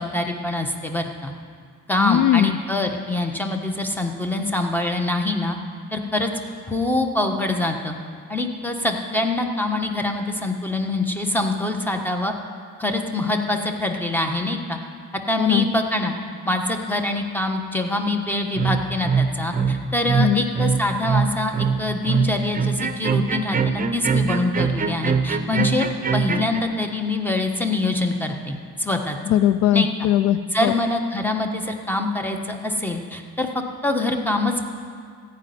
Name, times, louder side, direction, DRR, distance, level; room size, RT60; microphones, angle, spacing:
voice 1, 0.0-1.3 1.9-5.6 5.9-6.3 6.7-7.9 8.3-12.3 12.8-14.8 15.3-16.1 16.4-25.9 26.1-29.2 29.7-29.9 30.5-33.5 33.8-34.7, left 2 dB, 5° left, 3 dB, 1.4 m, -24 dB
voice 2, 2.0-2.6 15.4-15.7 20.2-20.4 29.3-30.7, left 11 dB, 80° left, 14 dB, 0.5 m, -19 dB
sound 1, 18.6-26.6, right 5 dB, 30° right, 0.8 m, -22 dB
14.5 x 5.5 x 9.5 m, 2.1 s
cardioid pair, 90°, 30 cm